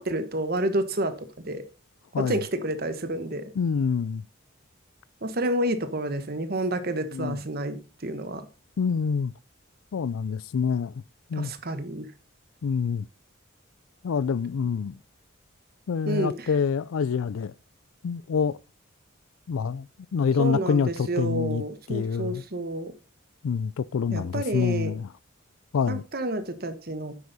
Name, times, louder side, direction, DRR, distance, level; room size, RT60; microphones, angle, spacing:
voice 1, 0.0-1.6 2.2-3.5 5.2-8.5 11.3-12.1 16.0-16.5 20.4-22.9 24.1-24.9 25.9-27.2, right 1 dB, 50° right, 1.3 m, -29 dB
voice 2, 3.6-4.2 7.1-7.4 8.8-9.3 9.9-10.9 11.3-11.5 12.6-13.1 14.0-15.0 15.9-17.5 18.0-18.6 19.5-19.9 20.1-21.6 21.9-22.4 23.4-25.1 25.7-26.0, left 6 dB, 85° left, 0.4 m, -26 dB
9.8 x 8.1 x 4.1 m
head